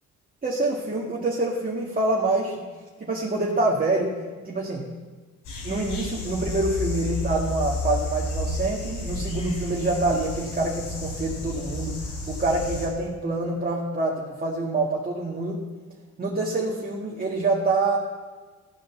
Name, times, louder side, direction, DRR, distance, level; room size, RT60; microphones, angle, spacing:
voice 1, 0.4-2.6 3.0-4.1 4.4-4.9 5.6-12.0 12.3-15.6 16.2-18.0, right 2 dB, 30° right, -2 dB, 1.8 m, -26 dB
sound 1, 5.4-12.9, left 2 dB, 80° left, 3.9 m, -31 dB
13.5 x 7.6 x 7.1 m, 1.4 s
cardioid pair, 90°, 30 cm